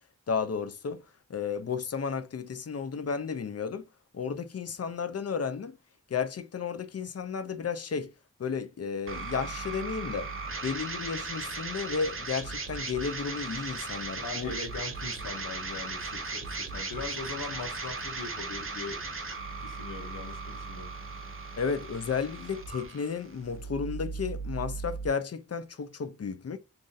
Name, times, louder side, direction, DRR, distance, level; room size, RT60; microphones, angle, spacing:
voice 1, 0.3-1.0 1.3-3.9 4.1-5.8 6.1-8.1 8.4-10.3 10.6-14.5 21.6-26.6, left 6 dB, 50° left, 0.5 m, -33 dB
sound 1, 9.1-25.1, right 4 dB, 40° right, 0.8 m, -37 dB
voice 2, 14.2-19.3 19.6-20.9, left 4 dB, 85° left, 0.9 m, -41 dB
2.7 x 2.5 x 3.9 m
wide cardioid pair, 50°, 32 cm